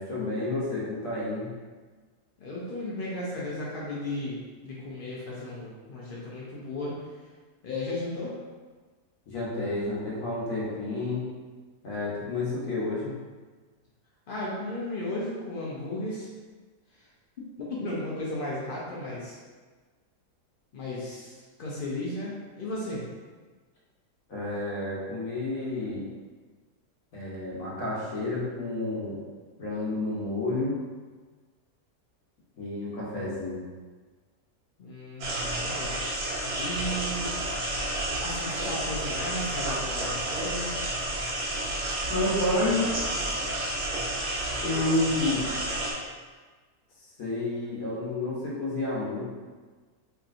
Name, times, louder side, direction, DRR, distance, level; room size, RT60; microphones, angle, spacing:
voice 1, 0.0-1.5 9.3-11.2 11.8-13.1 24.3-26.1 27.1-29.2 29.6-30.7 32.6-33.6 42.1-42.9 44.6-45.5 47.0-49.3, left 2 dB, 65° left, -7 dB, 1.2 m, -30 dB
voice 2, 2.4-7.0 7.6-8.3 14.3-16.3 16.9-17.1 17.7-19.4 20.7-23.0 34.8-36.0 36.5-37.4 38.2-40.7, left 1 dB, 80° left, -6 dB, 0.4 m, -35 dB
sound 1, 35.2-45.9, right 1 dB, 70° right, 1.1 m, -31 dB
3.2 x 2.7 x 2.5 m, 1.4 s
omnidirectional pair, 1.7 m